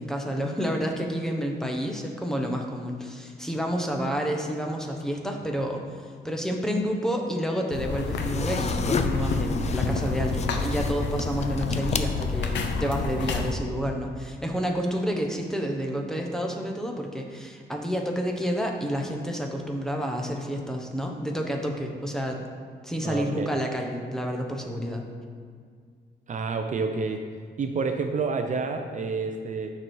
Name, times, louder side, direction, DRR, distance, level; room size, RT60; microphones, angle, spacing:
voice 1, 0.0-12.5 12.8-22.4 22.8-25.0, equal, 5° left, 1 dB, 0.9 m, -29 dB
sound 1, 7.7-13.5, left 4 dB, 90° left, 0.8 m, -29 dB
sound 2, 8.0-12.8, left 5 dB, 40° left, 0.5 m, -32 dB
voice 2, 23.0-23.5 26.3-27.2 27.6-29.7, right 4 dB, 45° right, 5 dB, 0.5 m, -29 dB
9.5 x 6.1 x 4.6 m, 2.1 s
wide cardioid pair, 145°, 18 cm